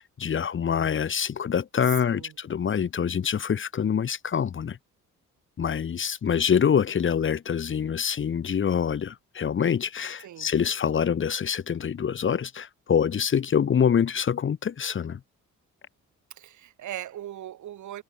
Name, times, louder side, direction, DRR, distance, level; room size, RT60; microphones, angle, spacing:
voice 1, 0.0-4.8 5.6-15.2, left 7 dB, 40° left, 1.1 m, -25 dB
voice 2, 16.3-18.0, right 12 dB, 75° right, 6.0 m, -39 dB
cardioid pair, 90°, 30 cm